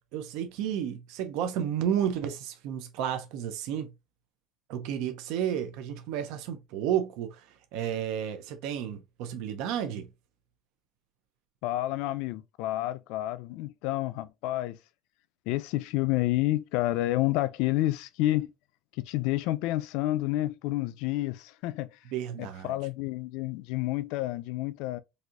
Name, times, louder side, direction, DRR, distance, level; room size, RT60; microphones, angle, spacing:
voice 1, 0.1-3.9 4.7-10.1 22.1-22.8, right 9 dB, 70° right, 0.5 m, -32 dB
voice 2, 11.6-14.8 15.5-18.5 19.1-22.0 22.4-25.0, left 16 dB, 70° left, 0.3 m, -29 dB
4.1 x 2.6 x 2.4 m
cardioid pair, 170°, 0 cm